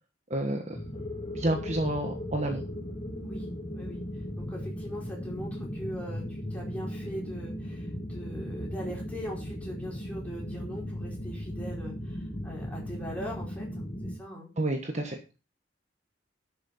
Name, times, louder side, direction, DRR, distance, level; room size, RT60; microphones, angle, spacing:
voice 1, 0.3-0.8 1.3-2.6 14.6-15.2, right 1 dB, 35° right, 4 dB, 1.3 m, -29 dB
sound 1, 0.7-14.2, equal, 30° left, 1.4 m, -37 dB
voice 2, 4.4-14.5, equal, 5° left, -3 dB, 4.8 m, -41 dB
11.5 x 6.7 x 5.5 m, 0.31 s
head